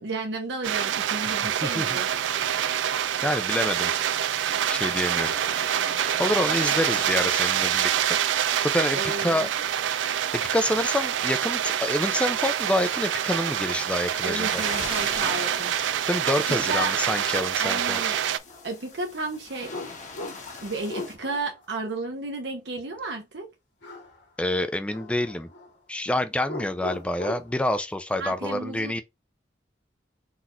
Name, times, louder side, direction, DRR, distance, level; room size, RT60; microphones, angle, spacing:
voice 1, 0.0-2.1 8.9-9.5 14.2-15.8 16.5-16.9 17.6-18.2 18.6-19.7 20.6-23.5 28.2-28.9, right 2 dB, 70° right, 0.8 m, -32 dB
sound 1, 0.6-18.4, right 10 dB, 90° right, 0.3 m, -26 dB
voice 2, 1.6-2.0 3.2-3.9 4.7-5.3 6.2-7.9 8.4-9.5 9.9-14.6 15.8-18.0 24.4-25.5 25.9-29.0, left 1 dB, 5° left, 0.4 m, -27 dB
sound 2, 2.1-21.1, left 4 dB, 40° left, 1.2 m, -43 dB
sound 3, 17.3-18.7 19.7-21.6 23.8-24.2 24.5-25.7 26.4-27.6, left 2 dB, 80° left, 1.4 m, -39 dB
4.0 x 2.5 x 4.3 m
head